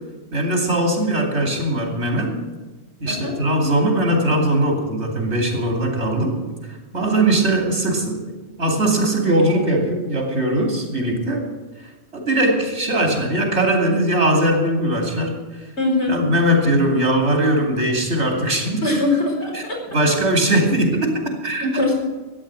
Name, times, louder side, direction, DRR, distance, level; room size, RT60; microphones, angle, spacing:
voice 1, 0.3-2.3 3.0-6.3 6.9-11.4 12.1-15.4 16.1-18.9 19.5-19.6 19.9-21.1 21.4-21.8, right 1 dB, 80° right, 1 dB, 3.2 m, -20 dB
voice 2, 15.8-16.1 18.8-19.8 21.8-21.9, left 2 dB, 80° left, -2 dB, 4.7 m, -21 dB
13.5 x 9.2 x 7.5 m, 1.3 s
omnidirectional pair, 1.1 m